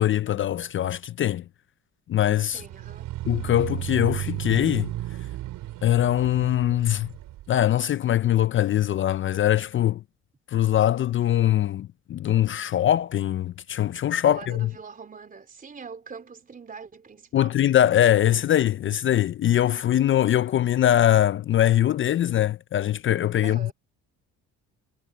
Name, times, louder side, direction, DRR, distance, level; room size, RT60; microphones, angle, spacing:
voice 1, 0.0-1.4 2.1-2.6 3.3-4.9 5.8-7.1 7.5-10.0 10.5-14.7 17.3-23.7, left 12 dB, 40° left, 0.4 m, -22 dB
voice 2, 2.5-3.1 14.2-17.6 23.4-23.7, right 5 dB, 25° right, 3.6 m, -42 dB
sound 1, 2.5-7.5, right 15 dB, 80° right, 4.6 m, -34 dB
cardioid pair, 120°, 32 cm